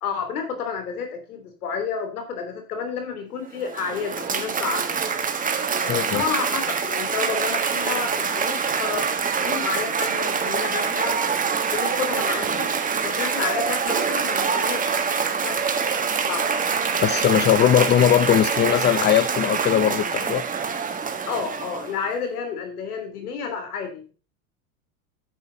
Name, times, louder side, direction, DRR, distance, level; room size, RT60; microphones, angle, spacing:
voice 1, 0.0-5.0 5.8-9.1 9.4-11.2 11.6-12.7 13.0-15.0 15.4-16.5 21.3-24.1, left 6 dB, 90° left, 3.3 m, -30 dB
Cheering / Applause, 3.5-22.1, right 6 dB, 20° right, 1.4 m, -25 dB
voice 2, 5.9-6.2 17.0-20.4, left 10 dB, 25° left, 0.7 m, -19 dB
9.8 x 8.0 x 4.1 m
supercardioid pair, 115°, 43 cm